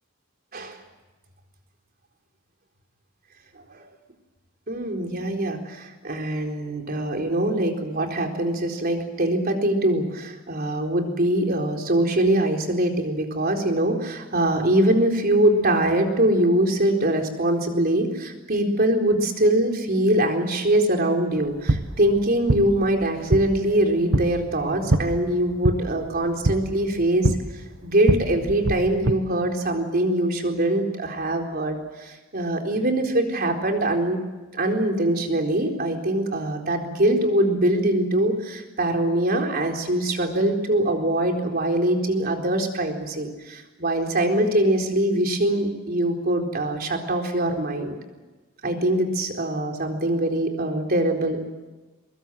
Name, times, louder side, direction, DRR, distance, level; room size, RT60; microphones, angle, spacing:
voice 1, 4.7-27.4 27.8-34.2 34.5-48.0 48.6-51.4, right 1 dB, 50° right, 3 dB, 4.2 m, -23 dB
sound 1, 21.3-29.1, right 2 dB, 70° right, 1.3 m, -26 dB
23.0 x 22.5 x 7.8 m, 1.2 s
head